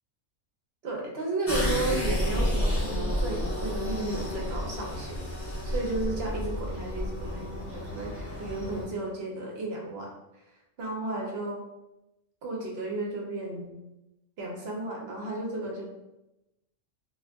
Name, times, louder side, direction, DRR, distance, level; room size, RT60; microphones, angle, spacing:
voice 1, 0.8-10.1 10.8-11.6 12.4-13.8 14.4-15.9, right 2 dB, 55° right, -1 dB, 0.9 m, -34 dB
sound 1, 1.5-8.8, left 1 dB, 15° left, 0.6 m, -30 dB
2.5 x 2.4 x 3.4 m, 0.93 s
omnidirectional pair, 1.4 m